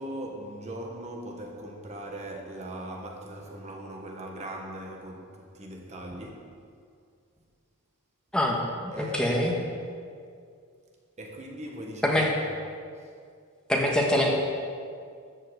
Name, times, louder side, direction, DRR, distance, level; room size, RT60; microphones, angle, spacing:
voice 1, 0.0-6.5 8.9-9.6 11.2-12.5 12.9-13.1, right 1 dB, 30° right, 0 dB, 1.2 m, -39 dB
voice 2, 8.3-9.5 12.0-12.3 13.7-14.3, left 1 dB, 5° left, -2 dB, 1.4 m, -24 dB
13.5 x 5.7 x 8.0 m, 2.2 s
head